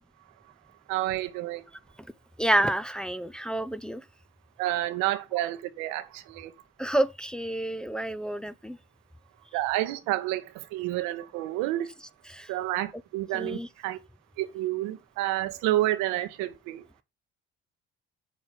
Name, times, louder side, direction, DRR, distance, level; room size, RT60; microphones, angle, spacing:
voice 1, 0.9-1.6 4.6-6.5 9.5-10.4 10.7-11.9 12.5-14.0 14.4-16.8, right 15 dB, 70° right, 1.1 m, -29 dB
voice 2, 2.4-4.0 6.8-8.8 12.3-12.5 13.3-13.7, right 1 dB, 5° left, 0.8 m, -28 dB
8.1 x 6.8 x 5.5 m
hypercardioid pair, 50°, 30 cm